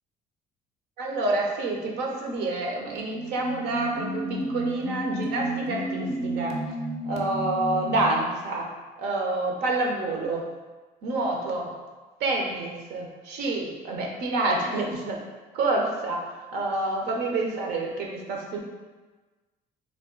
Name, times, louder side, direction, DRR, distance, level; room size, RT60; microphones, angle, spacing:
voice 1, 1.0-6.6 7.1-8.7 9.0-10.4 11.0-11.7 12.2-15.2 15.5-16.2 16.5-18.6, right 2 dB, 80° right, 0 dB, 0.7 m, -28 dB
sound 1, 3.0-8.3, right 1 dB, 40° right, 0.6 m, -31 dB
3.5 x 2.3 x 3.7 m, 1.3 s
cardioid pair, 110°, 17 cm